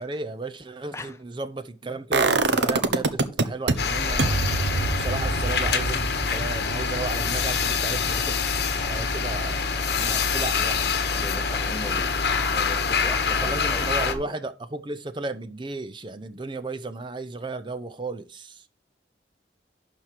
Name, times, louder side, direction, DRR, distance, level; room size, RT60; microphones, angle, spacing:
voice 1, 0.0-4.4 5.0-8.4 8.8-9.6 10.0-10.9 13.4-18.7, right 3 dB, 25° right, 0.6 m, -34 dB
sound 1, 2.1-3.7 4.2-10.0 10.3-10.4, right 3 dB, 85° right, 1.0 m, -26 dB
sound 2, 3.8-14.1, left 5 dB, 65° left, 1.1 m, -25 dB
voice 2, 11.2-14.2, left 2 dB, 15° left, 0.6 m, -39 dB
11.5 x 4.5 x 4.9 m
head